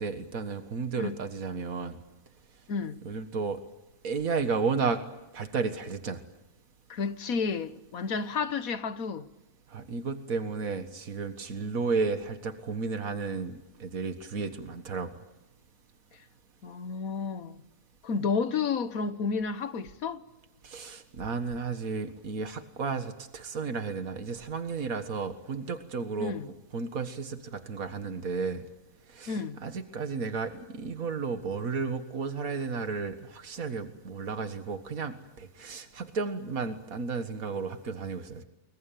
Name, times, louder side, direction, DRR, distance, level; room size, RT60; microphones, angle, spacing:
voice 1, 0.0-2.0 3.1-3.6 4.0-5.0 5.3-6.2 9.7-15.1 20.6-26.3 26.7-28.7 29.1-38.4, right 4 dB, 85° right, 2.1 m, -33 dB
voice 2, 2.7-3.0 6.9-9.3 16.1-16.2 16.6-17.6 18.0-20.3 26.2-26.5 29.3-29.6, left 5 dB, 90° left, 1.6 m, -31 dB
29.0 x 22.5 x 9.2 m
omnidirectional pair, 1.4 m